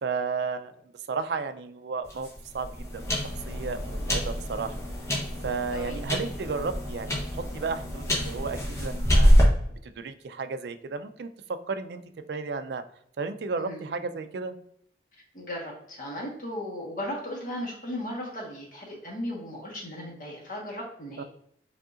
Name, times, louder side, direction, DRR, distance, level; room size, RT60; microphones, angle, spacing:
voice 1, 0.0-0.7 1.1-2.3 2.5-4.8 5.4-9.3 9.8-12.0 12.3-12.8 13.2-14.5 21.2-21.3, right 4 dB, 70° right, 10 dB, 0.4 m, -33 dB
sound 1, 2.0-9.4, equal, 15° left, 0.9 m, -26 dB
voice 2, 5.7-6.0 13.5-13.8 15.3-21.2, left 1 dB, 50° left, -2 dB, 1.3 m, -36 dB
5.1 x 2.8 x 2.5 m, 0.71 s
head